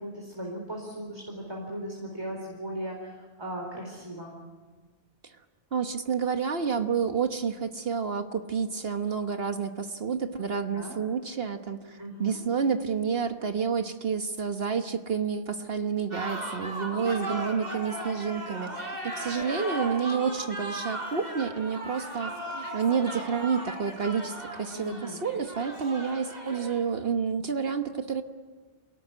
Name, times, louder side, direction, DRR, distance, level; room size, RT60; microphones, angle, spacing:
voice 1, 0.0-4.3 10.7-11.0 12.0-12.4 24.7-25.2, right 1 dB, 25° right, 0 dB, 4.5 m, -37 dB
voice 2, 5.7-28.2, right 6 dB, 65° right, 7 dB, 1.4 m, -29 dB
sound 1, 16.1-26.7, right 1 dB, 40° right, 4.5 m, -37 dB
28.0 x 18.5 x 9.9 m, 1.4 s
omnidirectional pair, 1.1 m